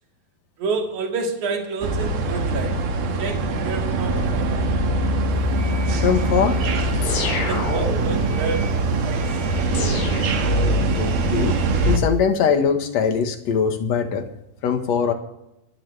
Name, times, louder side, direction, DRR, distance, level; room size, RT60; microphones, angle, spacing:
voice 1, 0.6-2.8 3.2-4.7 7.4-8.7 9.0-9.6, right 3 dB, 55° right, 1 dB, 3.6 m, -29 dB
sound 1, 1.8-12.0, right 2 dB, 75° right, 3.7 m, -22 dB
voice 2, 6.0-6.6 11.0-11.6 11.9-14.3 14.6-15.1, left 6 dB, 60° left, 6 dB, 2.0 m, -21 dB
sound 2, 7.0-8.3 9.7-11.0, left 3 dB, 80° left, 5.2 m, -29 dB
25.5 x 11.5 x 3.4 m, 0.84 s
omnidirectional pair, 4.4 m